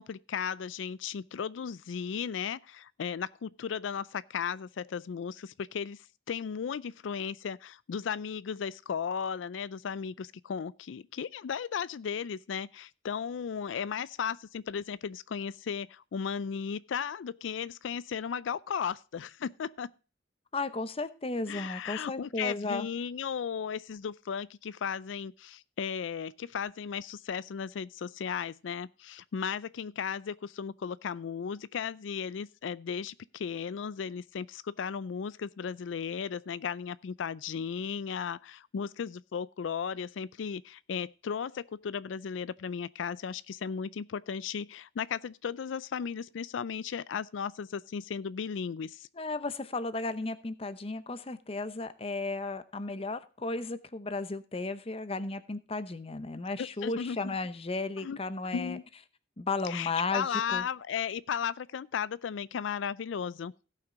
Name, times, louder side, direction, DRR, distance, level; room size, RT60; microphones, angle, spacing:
voice 1, 0.0-19.9 21.5-49.1 56.6-57.3 58.0-58.2 58.5-58.8 59.7-63.5, left 7 dB, 90° left, 0.4 m, -35 dB
voice 2, 20.5-22.9 49.2-58.8 59.4-60.6, left 3 dB, 30° left, 0.8 m, -34 dB
16.5 x 5.9 x 3.8 m
head